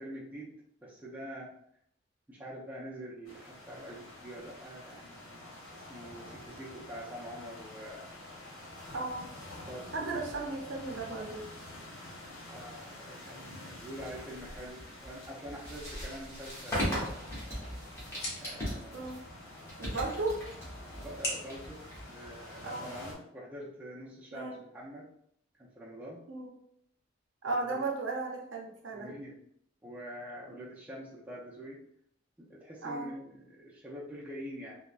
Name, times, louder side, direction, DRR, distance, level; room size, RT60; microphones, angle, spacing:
voice 1, 0.0-1.5 2.3-8.1 9.7-10.2 12.5-17.2 18.4-19.1 19.8-20.2 20.9-21.8 22.1-25.1 25.6-26.2 27.5-27.8 28.9-29.4 29.8-31.8 32.4-34.8, equal, 10° right, -6 dB, 0.4 m, -45 dB
sound 1, 3.2-23.1, left 1 dB, 80° left, 0.9 m, -48 dB
voice 2, 8.9-9.3 9.9-11.5 18.9-19.2 19.8-20.5 22.6-22.9 24.3-24.6 26.3-26.5 27.4-29.1 30.5-30.7 32.8-33.1, right 3 dB, 65° right, 0 dB, 0.6 m, -35 dB
sound 2, 14.0-22.6, equal, 15° left, 0.9 m, -39 dB
sound 3, 16.9-22.9, left 1 dB, 50° left, 0.8 m, -45 dB
3.2 x 2.1 x 2.4 m, 0.69 s
head